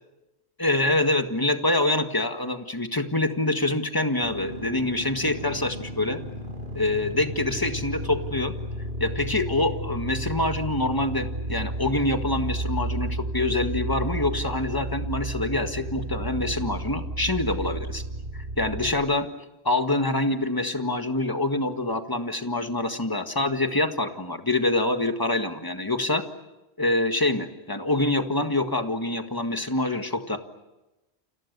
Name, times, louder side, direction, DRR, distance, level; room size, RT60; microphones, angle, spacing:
voice 1, 0.6-6.2 6.7-8.5 9.0-18.0 18.3-19.3 19.6-26.2 26.8-30.4, left 2 dB, 20° left, 6 dB, 1.8 m, -25 dB
sound 1, 4.2-18.9, right 1 dB, 50° right, 4.7 m, -33 dB
30.0 x 27.0 x 6.8 m, 1.0 s
omnidirectional pair, 1.1 m